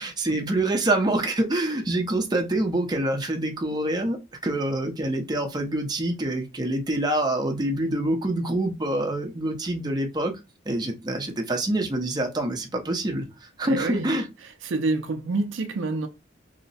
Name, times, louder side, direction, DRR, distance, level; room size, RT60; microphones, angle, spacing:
voice 1, 0.0-4.2 4.4-10.3 10.7-13.2 13.6-14.2, right 1 dB, 20° right, 0.6 m, -26 dB
voice 2, 13.6-14.1 14.6-16.1, right 3 dB, 80° right, 0.4 m, -27 dB
2.8 x 2.1 x 4.0 m
head